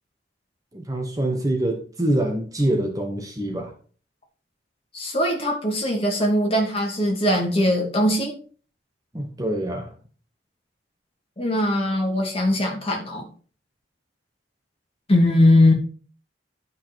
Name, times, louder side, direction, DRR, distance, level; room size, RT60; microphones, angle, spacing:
voice 1, 0.7-3.7 9.1-9.9, right 1 dB, 20° right, 3 dB, 1.1 m, -25 dB
voice 2, 4.9-8.4 11.4-13.3 15.1-15.7, left 1 dB, 30° left, 0 dB, 2.6 m, -20 dB
10.5 x 5.5 x 4.5 m, 0.41 s
head